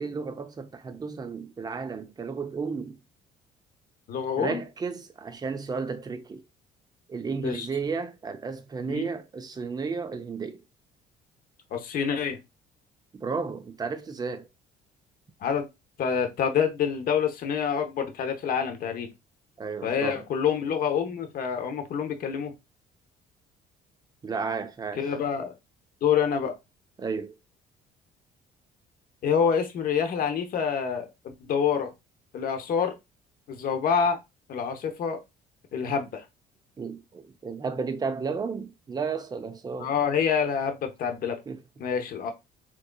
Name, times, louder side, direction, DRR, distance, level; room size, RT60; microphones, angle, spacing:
voice 1, 0.0-3.0 4.4-6.4 7.1-10.6 13.1-14.5 19.6-20.2 24.2-25.1 27.0-27.4 36.8-39.9 41.5-41.6, right 5 dB, 25° right, 0.5 m, -33 dB
voice 2, 4.1-4.6 7.4-7.7 8.9-9.1 11.7-12.4 15.4-15.7 16.0-19.1 19.8-22.5 25.0-25.5 26.0-26.6 29.2-31.1 31.5-31.9 32.3-33.0 33.5-34.2 34.5-35.2 35.7-36.2 39.8-41.4 41.8-42.3, left 7 dB, 55° left, 0.9 m, -27 dB
3.7 x 3.0 x 2.2 m
cardioid pair, 110°, 17 cm